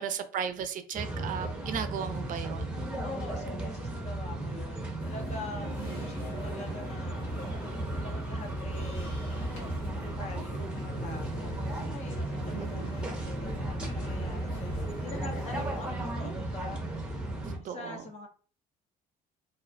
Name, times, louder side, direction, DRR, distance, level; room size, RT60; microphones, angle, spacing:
voice 1, 0.0-2.7 5.8-6.0 12.5-13.0 17.5-18.0, right 8 dB, 50° right, 0.4 m, -36 dB
sound 1, 0.9-17.6, right 1 dB, 5° right, 0.8 m, -35 dB
voice 2, 3.0-9.1 9.8-18.3, left 3 dB, 40° left, 0.6 m, -45 dB
sound 2, 5.0-15.9, left 1 dB, 85° left, 1.1 m, -44 dB
2.4 x 2.0 x 2.5 m
cardioid pair, 110°, 17 cm